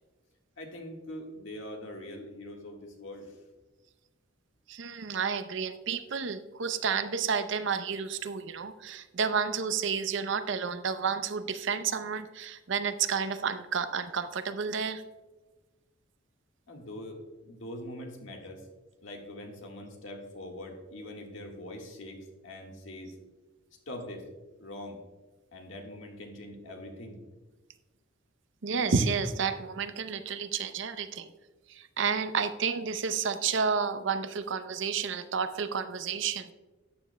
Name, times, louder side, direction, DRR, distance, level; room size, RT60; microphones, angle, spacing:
voice 1, 0.6-3.3 16.7-18.6 19.0-23.2 23.8-24.2 24.6-25.0 25.5-27.2, left 1 dB, 70° left, 2 dB, 1.6 m, -43 dB
voice 2, 4.7-15.0 28.6-31.3 31.7-36.5, right 6 dB, 65° right, 10 dB, 0.6 m, -31 dB
13.0 x 9.4 x 2.2 m, 1.2 s
head